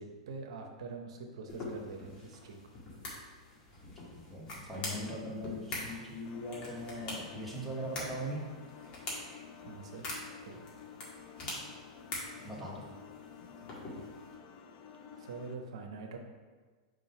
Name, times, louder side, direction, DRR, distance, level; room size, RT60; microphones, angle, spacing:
voice 1, 0.0-2.6 9.6-10.1 10.4-10.7 15.2-16.2, right 4 dB, 75° right, 3 dB, 0.8 m, -44 dB
sound 1, 1.5-14.3, left 2 dB, 30° left, 1.8 m, -44 dB
voice 2, 4.1-8.5 12.4-12.9, equal, ahead, -4 dB, 1.3 m, -40 dB
sound 2, 6.2-15.6, left 7 dB, 50° left, 0.6 m, -52 dB
4.8 x 3.8 x 5.5 m, 1.4 s
hypercardioid pair, 125°, 3 cm